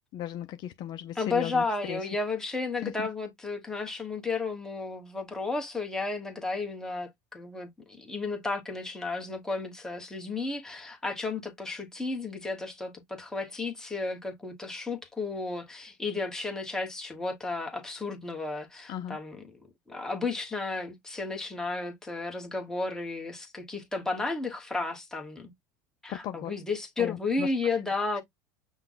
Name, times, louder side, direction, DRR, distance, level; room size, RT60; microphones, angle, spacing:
voice 1, 0.1-2.0 2.8-3.1 18.9-19.2 26.1-26.5 27.0-27.5, left 11 dB, 45° left, 0.6 m, -36 dB
voice 2, 1.2-19.4 19.9-25.5 26.0-28.2, left 3 dB, 5° left, 1.3 m, -33 dB
5.7 x 2.3 x 3.9 m
supercardioid pair, 135°, 11 cm